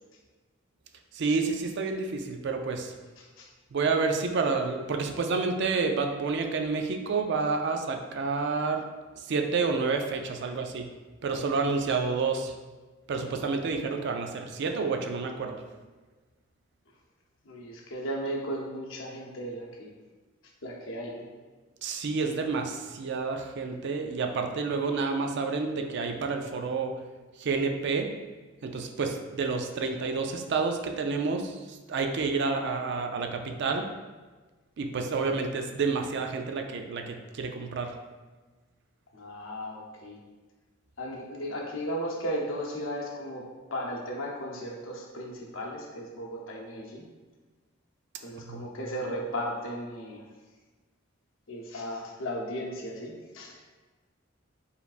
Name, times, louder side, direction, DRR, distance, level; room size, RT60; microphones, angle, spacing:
voice 1, 1.1-2.9 3.7-8.8 9.3-10.9 11.2-12.5 13.1-15.6 21.8-27.0 27.4-28.1 28.6-33.9 34.8-37.9 48.4-48.6, right 4 dB, 60° right, 5 dB, 0.4 m, -29 dB
voice 2, 3.2-3.5 17.4-19.9 20.6-21.3 39.1-40.2 41.0-43.4 43.7-47.0 48.2-50.2 51.5-53.6, equal, 75° left, -1 dB, 0.8 m, -35 dB
4.7 x 3.4 x 2.4 m, 1.3 s
head